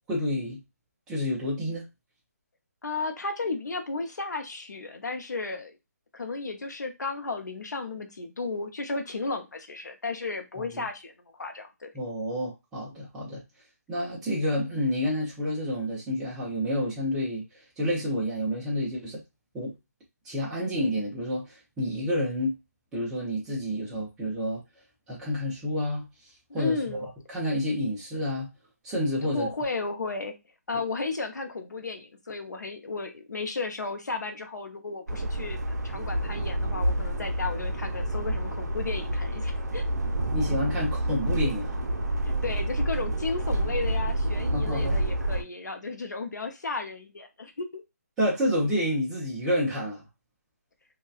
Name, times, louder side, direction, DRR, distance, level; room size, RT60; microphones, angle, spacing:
voice 1, 0.1-0.6 1.1-1.8 10.6-10.9 11.9-13.4 13.9-17.4 17.8-19.2 19.5-19.7 20.2-22.5 22.9-24.6 25.1-26.1 26.5-28.5 28.8-29.5 40.3-41.8 44.5-45.0 48.2-50.0, equal, 5° right, 0.6 m, -29 dB
voice 2, 2.8-5.8 6.1-11.9 26.5-27.0 29.2-30.3 30.7-39.9 42.2-47.8, left 3 dB, 90° left, 0.7 m, -34 dB
sound 1, 35.1-45.4, right 1 dB, 75° right, 0.5 m, -28 dB
2.8 x 2.2 x 2.4 m
hypercardioid pair, 165°, 9 cm